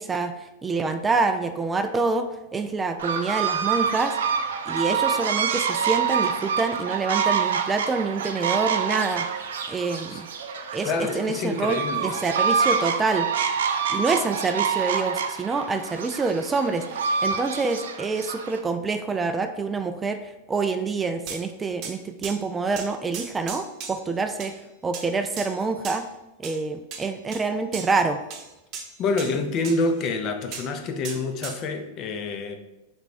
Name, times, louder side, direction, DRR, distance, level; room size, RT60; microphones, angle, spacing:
voice 1, 0.0-4.2 4.7-10.3 10.7-13.3 13.9-26.0 26.4-28.2, right 4 dB, 15° right, 7 dB, 0.3 m, -27 dB
sound 1, 3.0-18.6, right 6 dB, 80° right, 0.4 m, -26 dB
voice 2, 10.8-12.1 29.0-32.6, left 3 dB, 40° left, 6 dB, 0.5 m, -27 dB
sound 2, 21.3-21.4 21.8-22.0 22.2-22.4 22.8-24.1 24.4-24.6 24.9-25.1 25.4-26.0 26.4-26.6 26.9-27.5 27.7-28.0 28.3-29.4 29.6-30.1 30.5-30.7 31.0-31.6, right 6 dB, 45° right, 0.8 m, -37 dB
3.4 x 3.1 x 4.1 m, 0.98 s
hypercardioid pair, 115°, 0 cm